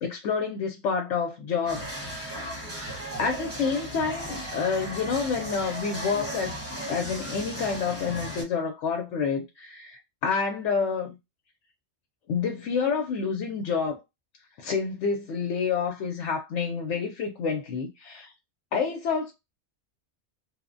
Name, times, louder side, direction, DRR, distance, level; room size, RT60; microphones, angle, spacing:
voice 1, 0.0-2.6 3.2-6.6 6.9-11.2 12.3-14.0 14.6-18.3 18.7-19.3, left 5 dB, 90° left, 0.9 m, -28 dB
sound 1, 1.6-8.4, right 1 dB, 15° right, 0.7 m, -36 dB
2.9 x 2.0 x 2.5 m
omnidirectional pair, 1.2 m